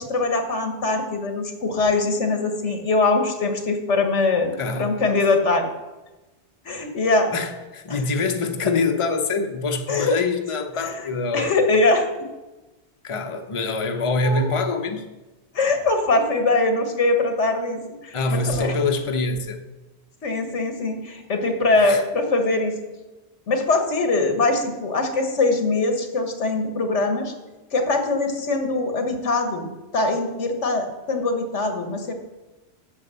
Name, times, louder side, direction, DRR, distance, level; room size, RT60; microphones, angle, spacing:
voice 1, 0.0-5.7 6.6-7.3 7.9-8.0 9.9-10.1 10.8-11.0 11.3-12.0 14.2-14.6 15.5-18.8 20.2-22.7 23.5-27.3 27.7-32.1, left 3 dB, 90° left, 5 dB, 1.7 m, -22 dB
voice 2, 4.6-5.0 7.3-11.5 13.0-15.1 18.1-19.6 21.8-22.0, left 3 dB, 30° left, 4 dB, 0.9 m, -25 dB
9.1 x 7.2 x 6.8 m, 1.1 s
omnidirectional pair, 1.2 m